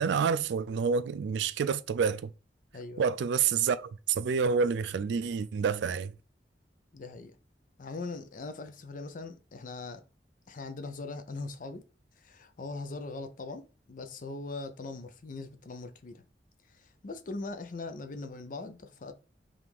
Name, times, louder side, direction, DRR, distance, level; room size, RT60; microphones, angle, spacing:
voice 1, 0.0-2.3 3.0-6.1, right 6 dB, 80° right, 0.3 m, -28 dB
voice 2, 2.7-3.1 6.9-7.4 7.8-10.0 10.5-11.8 12.2-16.2 16.7-19.1, left 3 dB, 50° left, 0.5 m, -41 dB
3.5 x 2.5 x 4.5 m
head